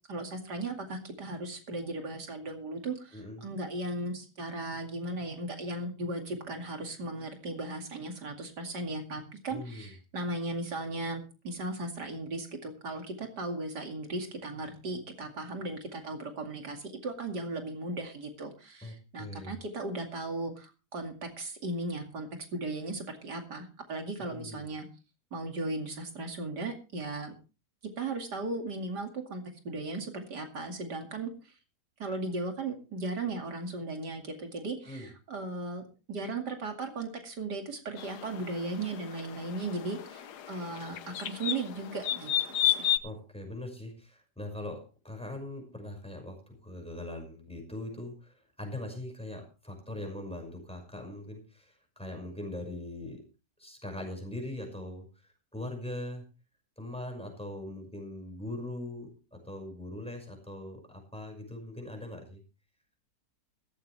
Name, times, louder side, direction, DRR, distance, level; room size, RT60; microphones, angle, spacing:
voice 1, 0.1-24.9 25.3-27.3 28.0-31.5 32.0-42.3 42.6-42.9, right 2 dB, 80° right, 4 dB, 3.0 m, -37 dB
voice 2, 3.1-3.5 9.5-9.9 18.8-19.6 24.2-24.7 34.8-35.1 43.0-53.2 53.6-56.2 56.8-62.4, left 1 dB, 5° left, 3 dB, 5.9 m, -41 dB
sound 1, 38.0-43.0, left 12 dB, 75° left, 1.4 m, -32 dB
15.5 x 15.0 x 3.4 m, 0.32 s
omnidirectional pair, 1.7 m